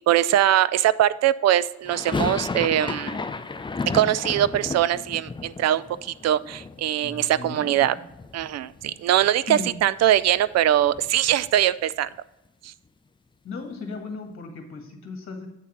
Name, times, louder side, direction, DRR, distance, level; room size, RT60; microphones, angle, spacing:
voice 1, 0.1-3.2 3.9-7.9 8.3-12.1 12.6-12.7, right 12 dB, 60° right, 17 dB, 0.4 m, -22 dB
sound 1, 1.8-7.8 8.1-8.9 9.2-9.3 9.5-11.7, left 4 dB, 15° left, 0.5 m, -33 dB
voice 2, 7.0-8.0 9.5-9.7 13.4-15.5, left 4 dB, 45° left, 3 dB, 1.6 m, -36 dB
8.3 x 3.5 x 5.8 m, 0.92 s
cardioid pair, 90°, 30 cm